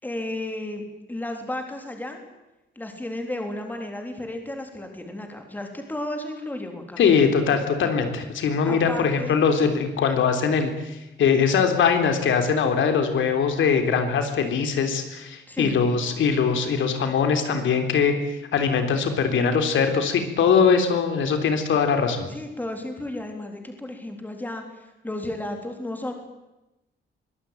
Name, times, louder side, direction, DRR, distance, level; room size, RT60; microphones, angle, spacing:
voice 1, 0.0-2.2 2.8-7.1 8.7-9.7 15.5-15.8 22.3-26.1, left 1 dB, 10° left, 4 dB, 3.7 m, -33 dB
voice 2, 7.0-18.1 18.5-22.3, left 6 dB, 90° left, 6 dB, 3.6 m, -21 dB
23.5 x 19.0 x 9.3 m, 0.98 s
wide cardioid pair, 170°, 19 cm